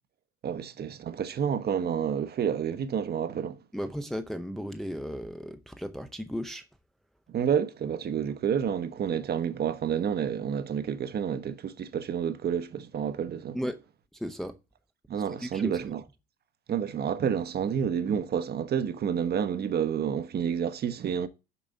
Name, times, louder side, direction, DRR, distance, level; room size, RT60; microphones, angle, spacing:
voice 1, 0.4-3.6 7.3-13.6 15.1-16.0 16.7-21.3, right 8 dB, 30° right, 1.0 m, -29 dB
voice 2, 3.7-6.6 13.5-13.8 14.1-14.6 15.4-15.8, equal, ahead, 0.8 m, -35 dB
7.0 x 6.1 x 6.7 m
figure-of-eight pair, 65°, 31 cm